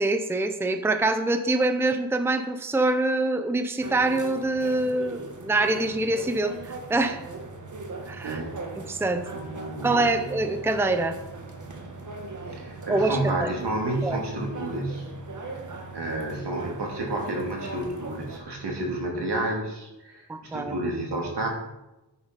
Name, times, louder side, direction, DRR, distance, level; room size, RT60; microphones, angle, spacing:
voice 1, 0.0-7.2 8.1-8.4 8.8-9.3 9.8-11.2 12.9-13.5 14.0-14.2 20.3-20.7, right 2 dB, 5° right, 8 dB, 0.6 m, -25 dB
sound 1, 3.8-18.4, right 3 dB, 50° right, 1.5 m, -39 dB
voice 2, 8.2-8.6 9.3-10.3 12.5-15.1 15.9-21.5, right 2 dB, 80° right, 0 dB, 2.7 m, -30 dB
10.0 x 9.7 x 4.1 m, 0.98 s
wide cardioid pair, 145°, 40 cm